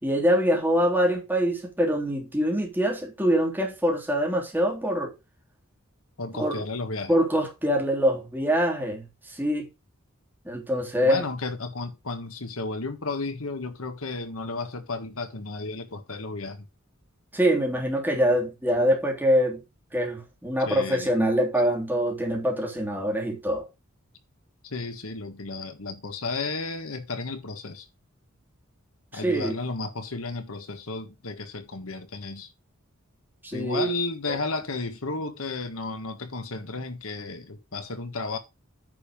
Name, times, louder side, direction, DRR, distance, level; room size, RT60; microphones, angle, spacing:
voice 1, 0.0-5.1 6.3-6.5 7.1-9.7 10.4-11.2 17.3-19.6 19.9-23.7 29.1-29.5 33.4-33.9, equal, 10° right, 3.3 m, -24 dB
voice 2, 6.2-7.1 11.0-16.7 20.6-21.1 24.6-27.9 29.1-32.5 33.5-38.4, left 3 dB, 85° left, 1.6 m, -33 dB
9.6 x 5.5 x 5.2 m
head